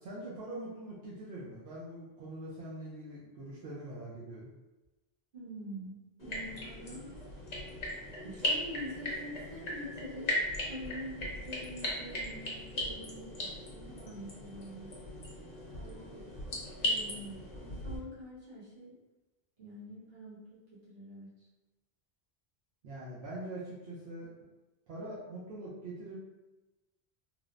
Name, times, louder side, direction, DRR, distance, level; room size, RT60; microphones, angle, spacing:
voice 1, 0.0-4.5 22.8-24.3 24.9-26.2, right 1 dB, 80° right, -8 dB, 0.9 m, -43 dB
voice 2, 5.3-7.2 7.8-10.4 10.7-14.9 15.7-19.0 19.6-21.3, equal, 55° right, -9 dB, 1.2 m, -46 dB
sound 1, 6.2-18.0, left 1 dB, 45° left, 0.7 m, -38 dB
3.1 x 2.0 x 2.4 m, 1.1 s
omnidirectional pair, 1.1 m